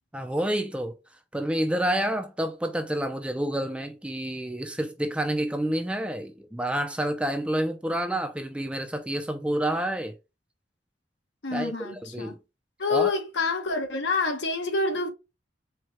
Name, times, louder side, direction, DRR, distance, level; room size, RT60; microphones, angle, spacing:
voice 1, 0.1-0.9 1.3-10.1 11.5-12.4 12.9-13.1, right 1 dB, 5° right, 0.5 m, -29 dB
voice 2, 11.4-12.3 12.8-15.1, left 3 dB, 70° left, 1.1 m, -27 dB
4.5 x 2.3 x 4.3 m
head